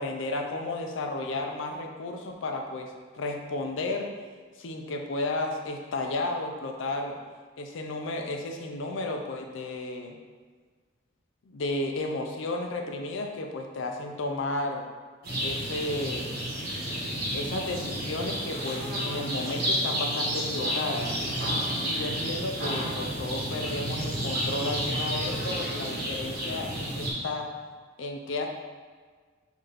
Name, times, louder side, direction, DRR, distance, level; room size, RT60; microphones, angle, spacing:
voice 1, 0.0-4.1 4.6-7.2 7.6-10.2 11.5-14.9 15.4-16.3 17.3-21.1 21.8-26.7 27.0-27.5 28.0-28.5, left 2 dB, 80° left, 3 dB, 0.5 m, -33 dB
sound 1, 15.2-27.1, equal, 50° right, 1.3 m, -31 dB
5.6 x 2.7 x 3.4 m, 1.5 s
head